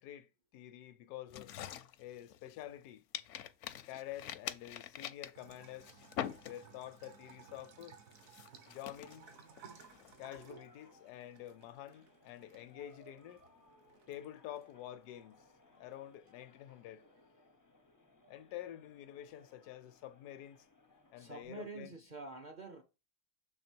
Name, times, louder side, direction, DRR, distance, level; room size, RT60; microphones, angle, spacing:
voice 1, 0.0-1.5 2.0-3.0 3.9-6.0 6.4-8.0 8.7-9.3 10.2-13.4 14.1-15.5 15.7-17.0 18.3-20.7 21.1-21.9, left 12 dB, 85° left, 1.1 m, -48 dB
sound 1, 1.3-2.8 3.1-6.9 7.3-7.6 8.1-10.4, left 11 dB, 70° left, 0.7 m, -45 dB
Bathtub (filling or washing) / Trickle dribble, 5.4-16.3, right 6 dB, 65° right, 1.2 m, -60 dB
sound 2, 8.7-21.5, left 2 dB, 30° left, 0.3 m, -66 dB
voice 2, 21.2-22.8, right 3 dB, 50° right, 0.5 m, -47 dB
6.7 x 3.3 x 4.4 m
omnidirectional pair, 1.6 m